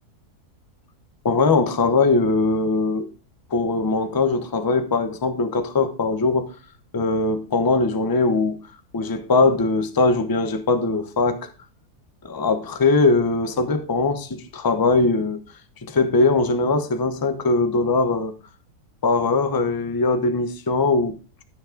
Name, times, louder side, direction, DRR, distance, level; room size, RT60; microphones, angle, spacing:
voice 1, 1.2-3.1 3.5-6.5 6.9-8.6 8.9-11.5 12.2-15.4 15.8-18.4 19.0-21.2, left 3 dB, 20° left, 0.5 m, -21 dB
12.5 x 5.9 x 3.8 m
omnidirectional pair, 1.7 m